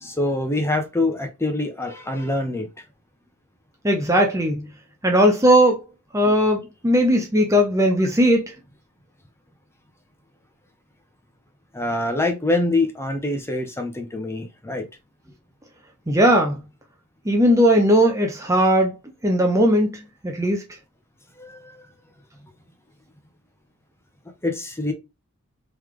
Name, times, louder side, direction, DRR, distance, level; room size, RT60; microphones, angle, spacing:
voice 1, 0.0-2.7 6.2-6.3 11.7-14.9 21.4-21.8 24.4-24.9, left 2 dB, 10° left, 0.8 m, -25 dB
voice 2, 3.8-4.7 5.0-5.8 6.1-8.5 16.1-16.6 17.3-18.9 19.2-20.6, equal, 15° right, 0.6 m, -18 dB
3.9 x 3.3 x 3.1 m
head